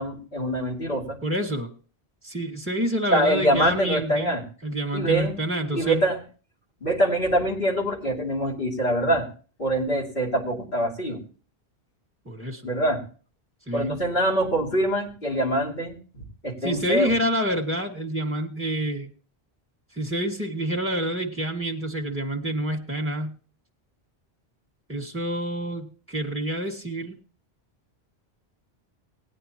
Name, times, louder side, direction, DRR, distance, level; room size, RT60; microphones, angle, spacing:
voice 1, 0.0-1.2 3.1-4.4 4.9-5.4 5.7-6.2 6.8-9.3 9.6-11.2 12.6-13.0 13.7-17.1, right 1 dB, 55° left, -1 dB, 3.2 m, -24 dB
voice 2, 1.2-1.7 2.2-4.3 4.6-6.0 12.3-12.7 13.7-14.0 16.6-19.1 19.9-23.4 24.9-27.2, right 1 dB, 10° right, 1 dB, 2.0 m, -28 dB
19.5 x 9.3 x 2.9 m, 0.38 s
omnidirectional pair, 1.1 m